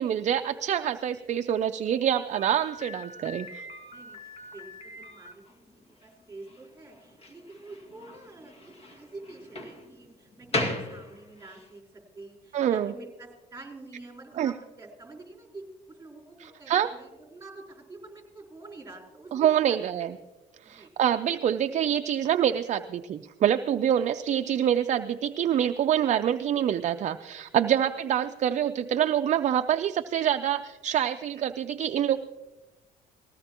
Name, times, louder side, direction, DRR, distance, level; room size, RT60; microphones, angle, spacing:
voice 1, 0.0-3.7 12.5-12.9 14.4-14.5 16.4-16.9 19.3-20.1 20.6-32.2, right 10 dB, 45° right, 8 dB, 0.5 m, -26 dB
Slam, 2.3-11.7, left 1 dB, 35° left, 2.0 m, -38 dB
voice 2, 4.5-5.5 5.7-8.5 8.8-11.8 12.1-19.8 20.6-20.9, right 2 dB, 15° right, 0 dB, 4.4 m, -47 dB
19.5 x 16.0 x 3.0 m, 1.1 s
cardioid pair, 110°, 17 cm